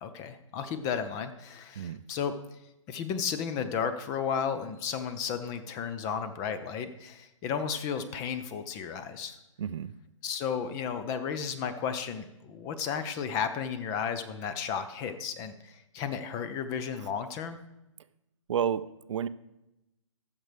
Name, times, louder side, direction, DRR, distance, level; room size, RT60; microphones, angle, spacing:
voice 1, 0.0-2.3 2.9-9.4 10.2-17.6, left 7 dB, 20° left, 10 dB, 0.5 m, -33 dB
voice 2, 9.6-9.9 18.5-19.3, right 8 dB, 65° right, 15 dB, 0.4 m, -31 dB
14.0 x 6.7 x 3.4 m, 0.91 s
hypercardioid pair, 140°, 17 cm